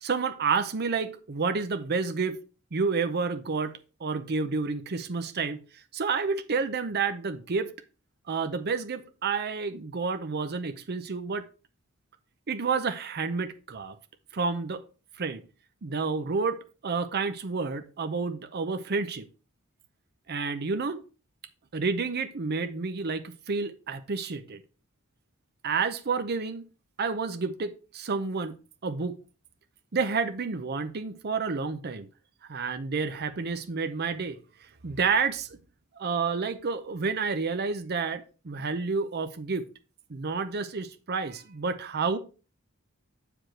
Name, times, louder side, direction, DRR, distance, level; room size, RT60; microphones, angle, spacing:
voice 1, 0.0-2.4 2.7-3.7 4.0-5.6 5.9-7.7 8.3-11.4 12.5-14.0 14.3-14.8 15.2-15.4 15.8-16.6 16.8-19.3 20.3-21.0 21.7-24.6 25.6-26.6 27.0-28.6 28.8-29.2 29.9-32.1 32.5-34.4 34.8-35.6 36.0-39.6 40.1-42.2, right 4 dB, 50° right, 0.6 m, -29 dB
7.9 x 5.0 x 4.5 m
head